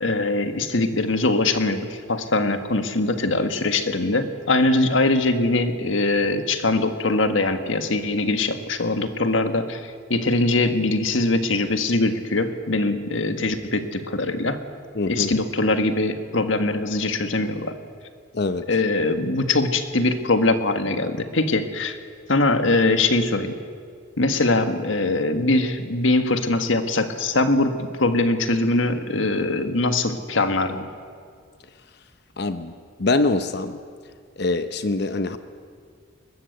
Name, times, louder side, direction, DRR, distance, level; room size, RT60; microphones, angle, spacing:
voice 1, 0.0-14.6 15.1-17.7 18.7-22.0 22.3-23.6 24.2-30.9, left 2 dB, 70° left, 8 dB, 1.6 m, -22 dB
voice 2, 14.9-15.3 18.3-18.7 32.4-32.7 33.0-33.8 34.4-35.4, left 3 dB, 55° left, 10 dB, 0.8 m, -24 dB
22.0 x 20.5 x 8.0 m, 2.1 s
head